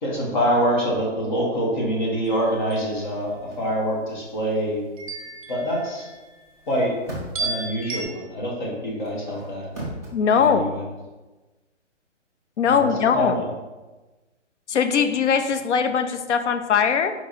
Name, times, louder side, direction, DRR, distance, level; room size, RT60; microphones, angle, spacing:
voice 1, 0.0-4.8 5.5-6.1 6.7-6.9 7.4-9.7 10.3-10.8 12.7-13.5, equal, 40° left, -2 dB, 1.3 m, -25 dB
sound 1, 2.3-2.8 5.0-6.4 7.4-8.0, right 4 dB, 30° right, 0.6 m, -33 dB
sound 2, 3.2-3.6 6.5-7.6 9.0-10.1, right 1 dB, 15° left, 0.5 m, -37 dB
voice 2, 10.1-10.7 12.6-13.4 14.7-17.1, left 6 dB, 70° left, 8 dB, 0.6 m, -20 dB
4.5 x 2.9 x 4.1 m, 1.2 s
hypercardioid pair, 160°, 36 cm